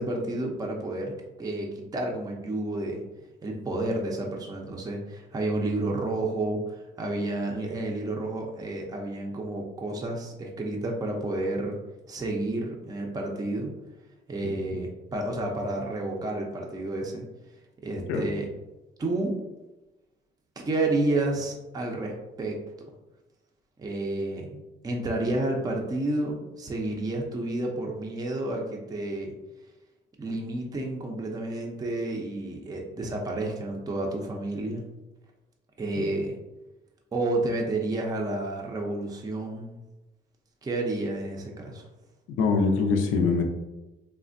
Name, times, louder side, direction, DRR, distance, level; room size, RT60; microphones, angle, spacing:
voice 1, 0.0-3.0 3.4-11.8 12.1-13.7 14.3-17.3 17.8-18.5 19.0-19.4 20.6-22.6 23.8-29.3 30.2-34.8 35.8-36.4 37.1-39.8 40.6-41.9, right 2 dB, 20° right, 0 dB, 0.4 m, -30 dB
voice 2, 42.4-43.4, left 4 dB, 80° left, 3 dB, 0.5 m, -23 dB
3.2 x 2.1 x 2.5 m, 1.0 s
cardioid pair, 90°, 20 cm